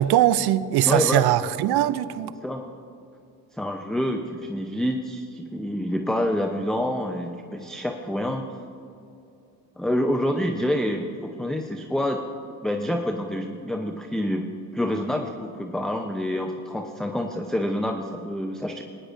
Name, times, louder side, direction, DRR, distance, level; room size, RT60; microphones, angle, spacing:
voice 1, 0.0-2.3, right 13 dB, 65° right, 16 dB, 0.6 m, -21 dB
voice 2, 0.9-1.2 2.4-2.7 3.5-8.5 9.8-12.2 12.6-14.5 14.7-18.8, left 1 dB, ahead, 4 dB, 0.7 m, -27 dB
18.5 x 9.9 x 2.6 m, 2.6 s
supercardioid pair, 60°, 42 cm